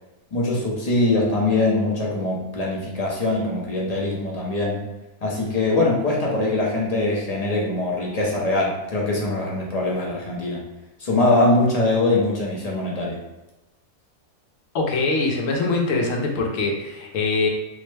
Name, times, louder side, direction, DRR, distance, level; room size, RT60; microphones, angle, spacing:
voice 1, 0.3-4.8 5.2-10.6 11.0-13.2, left 2 dB, 40° left, -4 dB, 0.6 m, -22 dB
voice 2, 14.7-17.5, left 3 dB, 70° left, 1 dB, 1.0 m, -23 dB
3.7 x 2.1 x 3.2 m, 1.0 s
omnidirectional pair, 1.5 m